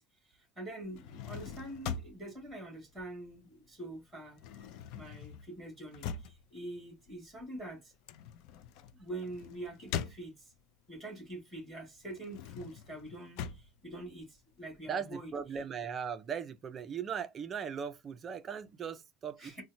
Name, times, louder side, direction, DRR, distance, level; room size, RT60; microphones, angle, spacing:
voice 1, 0.0-4.7 4.9-7.9 9.0-10.5 10.9-15.3 19.4-19.6, right 1 dB, ahead, 1.5 m, -45 dB
sound 1, 0.8-3.7 4.0-10.8 11.2-14.8, left 8 dB, 55° left, 0.3 m, -43 dB
voice 2, 14.9-19.6, right 7 dB, 20° right, 0.4 m, -38 dB
4.1 x 2.1 x 2.5 m
cardioid pair, 175°, 0 cm